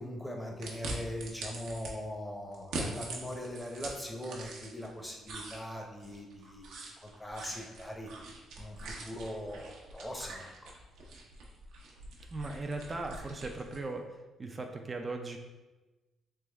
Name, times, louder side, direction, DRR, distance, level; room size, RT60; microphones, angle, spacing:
voice 1, 0.0-8.1 8.6-10.7, equal, 5° left, 0 dB, 0.7 m, -41 dB
sound 1, 0.6-1.9 2.5-4.9 5.2-13.9, right 2 dB, 85° right, 0.7 m, -43 dB
voice 2, 12.3-14.1 14.4-15.4, right 3 dB, 30° right, 4 dB, 0.3 m, -38 dB
3.4 x 2.9 x 3.4 m, 1.1 s
cardioid pair, 90°, 0 cm